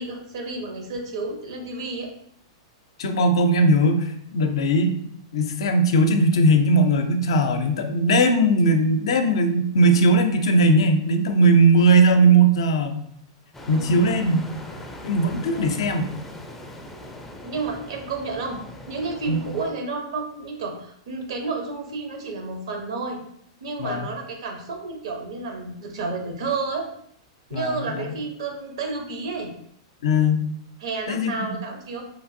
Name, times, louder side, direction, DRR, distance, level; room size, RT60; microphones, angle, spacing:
voice 1, 0.0-2.1 4.5-4.6 13.7-14.0 15.5-15.7 17.4-18.6 18.9-23.2 23.6-26.8 27.5-29.5 30.8-32.0, right 3 dB, 75° right, 3 dB, 0.8 m, -31 dB
voice 2, 3.0-5.0 5.3-13.1 13.7-14.4 15.0-16.1 19.3-19.4 23.8-24.1 27.5-28.1 30.0-30.5 31.1-31.5, right 1 dB, 75° left, 7 dB, 0.4 m, -19 dB
sound 1, 13.5-19.7, left 1 dB, 10° left, 0.4 m, -40 dB
3.0 x 2.5 x 2.6 m, 0.68 s
hypercardioid pair, 120°, 3 cm